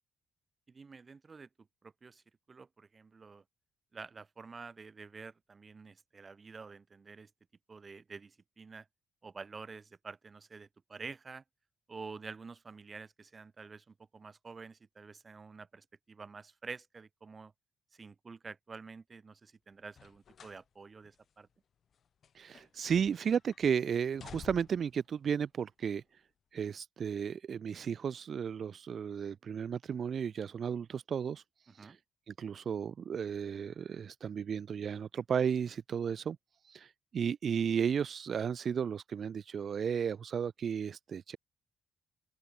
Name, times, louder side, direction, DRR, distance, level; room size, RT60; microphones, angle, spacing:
voice 1, 0.7-1.5 1.8-3.4 3.9-7.3 7.7-8.9 9.2-11.4 11.9-17.5 17.9-21.5 31.7-32.0, right 4 dB, 35° right, 5.6 m, -49 dB
sound 1, 19.9-20.7 21.0-21.2 21.9-23.0 23.2-23.6 24.0-24.9 25.8-25.9, left 7 dB, 55° left, 1.4 m, -52 dB
voice 2, 22.3-26.0 26.5-31.4 31.7-32.0 32.3-36.4 36.6-41.4, right 7 dB, 50° right, 1.2 m, -34 dB
open air
cardioid pair, 90°, 0 cm